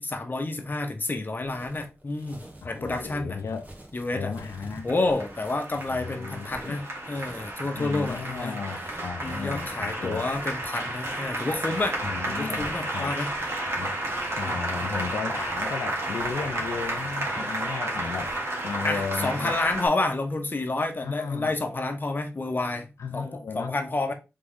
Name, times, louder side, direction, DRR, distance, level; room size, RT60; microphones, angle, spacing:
voice 1, 0.0-3.4 3.9-4.3 4.8-8.6 9.2-13.3 14.5-14.9 18.8-24.1, left 2 dB, 40° left, 1.1 m, -29 dB
sound 1, 1.4-19.9, right 1 dB, 30° right, 1.6 m, -46 dB
voice 2, 2.6-3.6 4.1-4.9 5.9-6.8 7.8-10.3 12.0-13.2 13.8-14.0 14.4-18.4 18.6-19.6 21.0-21.5 23.0-23.8, left 5 dB, 85° left, 0.5 m, -34 dB
Applause, 4.5-19.9, right 1 dB, 60° right, 1.9 m, -32 dB
3.8 x 3.4 x 3.7 m
cardioid pair, 50°, 5 cm